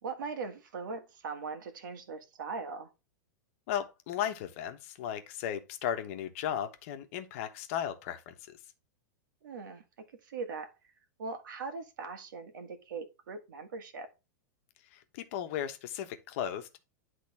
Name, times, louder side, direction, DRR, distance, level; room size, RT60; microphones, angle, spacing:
voice 1, 0.0-2.9 9.4-9.8 10.2-10.7 11.2-14.1, right 4 dB, 80° right, 1.8 m, -40 dB
voice 2, 3.7-8.6 14.9-16.8, left 10 dB, 40° left, 1.1 m, -36 dB
10.5 x 3.7 x 3.5 m
supercardioid pair, 170°, 10 cm